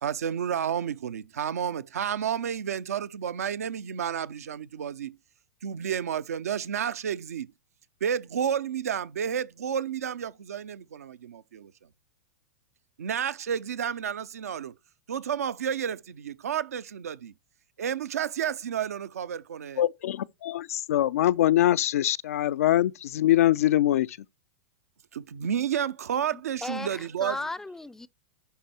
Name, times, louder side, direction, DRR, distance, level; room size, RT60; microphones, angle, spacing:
voice 1, 0.0-5.2 5.6-7.5 8.0-11.7 13.0-14.8 15.1-17.3 17.8-19.8 25.1-27.4, right 8 dB, 75° right, 0.6 m, -31 dB
voice 2, 19.8-24.2, left 13 dB, 70° left, 0.4 m, -23 dB
voice 3, 26.3-28.1, left 2 dB, 5° left, 0.5 m, -36 dB
11.5 x 4.6 x 4.3 m
hypercardioid pair, 100°, 8 cm